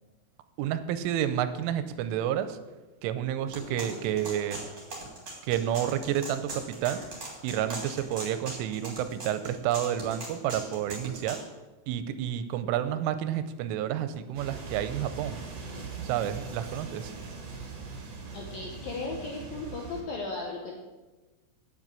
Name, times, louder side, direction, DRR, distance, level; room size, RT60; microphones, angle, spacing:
voice 1, 0.6-2.6 3.0-4.6 5.4-7.0 7.4-11.4 11.9-15.4 16.0-17.1, right 11 dB, 90° right, 11 dB, 3.2 m, -30 dB
sound 1, 3.5-11.4, right 2 dB, 30° right, 2.7 m, -39 dB
voice 2, 3.7-4.1 18.3-20.8, left 3 dB, 75° left, 0 dB, 2.1 m, -37 dB
sound 2, 14.3-20.0, right 4 dB, 50° right, 2.1 m, -41 dB
9.1 x 7.6 x 8.2 m, 1.2 s
omnidirectional pair, 5.7 m